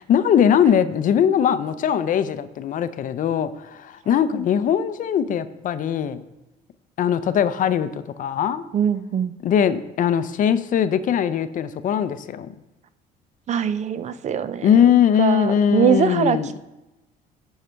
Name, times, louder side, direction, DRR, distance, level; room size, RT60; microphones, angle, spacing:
voice 1, 0.0-6.2 7.0-8.6 9.4-12.5 14.6-16.5, left 8 dB, 50° left, 13 dB, 0.5 m, -20 dB
voice 2, 8.7-9.3 13.5-14.7 15.2-16.6, right 8 dB, 45° right, 13 dB, 0.5 m, -22 dB
11.0 x 4.8 x 4.4 m, 1.0 s
cardioid pair, 110°, 17 cm